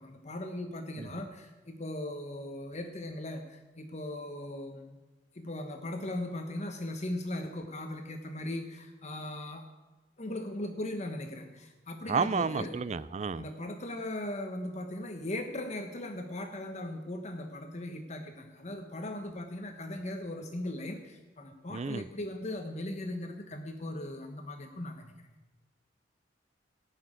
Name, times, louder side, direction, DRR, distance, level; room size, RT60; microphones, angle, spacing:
voice 1, 0.0-5.0 5.3-9.6 10.2-12.7 13.3-25.3, left 1 dB, 40° left, 5 dB, 1.2 m, -38 dB
voice 2, 12.1-13.4 21.7-22.0, right 5 dB, 40° right, 16 dB, 0.4 m, -31 dB
18.0 x 6.4 x 8.8 m, 1.2 s
head